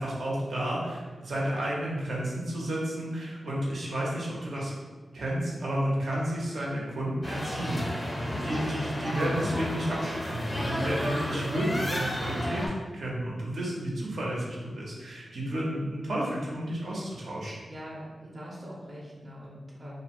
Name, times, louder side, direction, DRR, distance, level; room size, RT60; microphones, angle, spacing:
voice 1, 0.0-4.7 5.1-7.8 8.1-17.6, right 1 dB, 75° right, -5 dB, 0.7 m, -31 dB
sound 1, 7.2-12.7, left 1 dB, 20° left, 0.5 m, -32 dB
voice 2, 9.5-9.9 17.4-20.0, equal, 35° right, -5 dB, 0.6 m, -43 dB
2.6 x 2.0 x 3.0 m, 1.3 s
cardioid pair, 75°, 0 cm